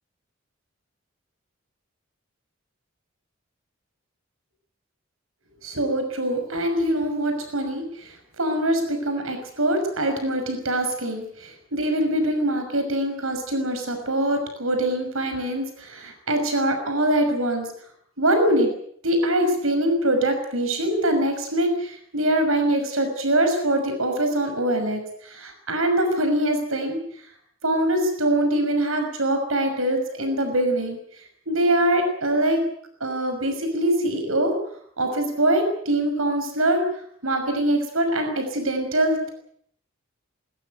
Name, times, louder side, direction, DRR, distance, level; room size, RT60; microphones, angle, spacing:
voice 1, 5.6-17.7 18.2-18.7 19.0-27.0 27.6-31.0 31.5-32.6 33.0-34.5 35.0-36.8 37.2-39.3, right 1 dB, 80° right, 6 dB, 6.0 m, -23 dB
20.5 x 20.0 x 9.3 m, 0.65 s
head